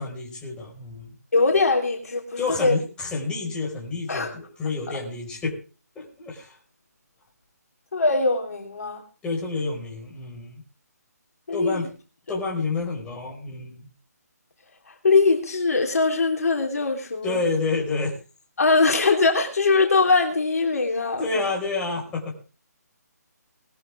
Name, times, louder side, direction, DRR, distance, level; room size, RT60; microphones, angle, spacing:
voice 1, 0.0-1.1 2.4-5.6 5.9-6.6 9.2-10.6 11.5-11.9 12.3-13.8 17.2-18.1 20.9-22.3, left 3 dB, 10° left, -2 dB, 5.1 m, -29 dB
voice 2, 1.3-2.2 2.6-2.8 4.1-4.3 7.9-9.0 11.5-11.8 15.0-17.4 18.6-21.2, left 3 dB, 60° left, 3 dB, 3.2 m, -21 dB
20.0 x 14.0 x 3.6 m, 0.35 s
figure-of-eight pair, 150°, 9 cm